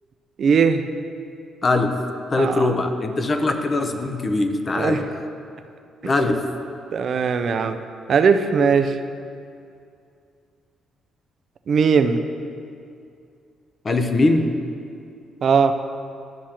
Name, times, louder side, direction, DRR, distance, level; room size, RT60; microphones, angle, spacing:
voice 1, 0.4-0.8 2.4-2.7 4.7-5.0 6.9-7.8 8.1-8.9 11.7-12.2 15.4-15.7, right 6 dB, 55° right, 8 dB, 0.4 m, -19 dB
voice 2, 1.6-2.0 2.3-5.0 6.0-6.5 13.8-14.5, left 2 dB, 35° left, 6 dB, 0.6 m, -21 dB
12.0 x 6.2 x 2.9 m, 2.4 s
cardioid pair, 90°, 0 cm